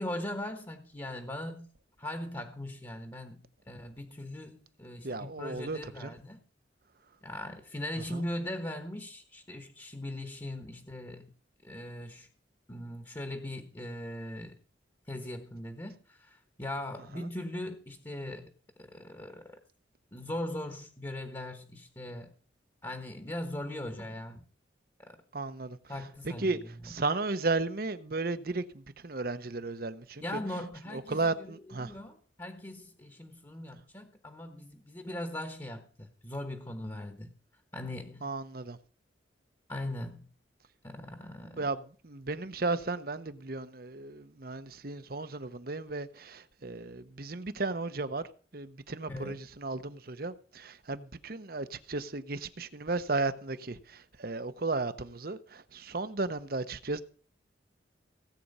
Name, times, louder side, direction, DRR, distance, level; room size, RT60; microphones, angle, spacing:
voice 1, 0.0-1.7 2.0-6.4 7.2-11.3 11.6-12.3 12.7-14.5 15.1-18.5 18.8-19.6 20.1-22.3 22.8-24.4 25.0-25.2 25.9-26.9 30.2-37.3 37.7-38.3 39.7-40.3 40.8-41.7 49.1-49.4, left 1 dB, 20° left, 1.3 m, -40 dB
voice 2, 5.0-6.1 8.1-8.2 25.3-25.8 26.2-30.2 30.9-32.0 38.2-38.8 41.4-48.3 48.5-57.0, right 3 dB, 50° right, 0.9 m, -34 dB
17.5 x 8.5 x 5.5 m
head